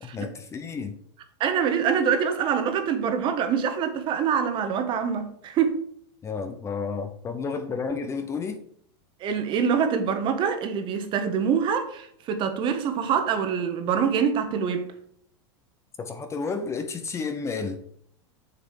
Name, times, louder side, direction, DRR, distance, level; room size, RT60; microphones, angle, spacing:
voice 1, 0.0-1.0 6.2-8.7 16.0-17.8, left 5 dB, 20° left, 0.8 m, -31 dB
voice 2, 1.4-5.8 9.2-14.9, right 7 dB, 35° right, 1.3 m, -25 dB
6.9 x 6.6 x 4.8 m
supercardioid pair, 135°, 15 cm